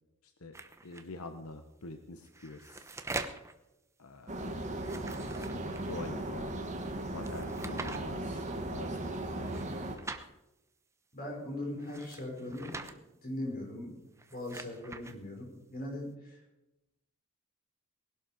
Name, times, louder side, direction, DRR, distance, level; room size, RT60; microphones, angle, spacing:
voice 1, 0.2-0.6 0.8-2.9 4.0-4.6 5.0-6.5 7.1-9.1 9.4-9.7, left 2 dB, 85° left, 6 dB, 1.2 m, -46 dB
sound 1, 0.5-1.0 2.2-3.5 4.7-6.0 7.2-8.0 9.4-10.3 11.8-12.9 14.1-15.1, right 3 dB, 15° right, 0.9 m, -43 dB
sound 2, 4.3-10.0, right 1 dB, 35° right, 1.9 m, -37 dB
voice 2, 7.6-7.9 11.1-14.0 14.3-16.4, left 1 dB, 45° left, 0 dB, 5.4 m, -40 dB
19.5 x 12.0 x 5.1 m, 0.94 s
head